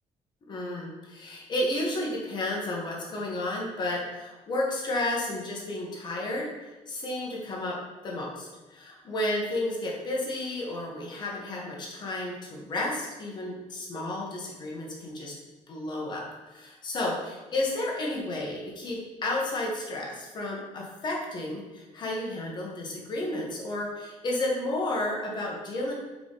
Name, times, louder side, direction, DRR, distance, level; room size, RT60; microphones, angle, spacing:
voice 1, 0.5-6.5 6.9-7.8 8.0-15.3 15.7-25.9, left 1 dB, 35° left, -2 dB, 1.4 m, -32 dB
5.7 x 4.7 x 4.0 m, 1.2 s
cardioid pair, 175°, 13 cm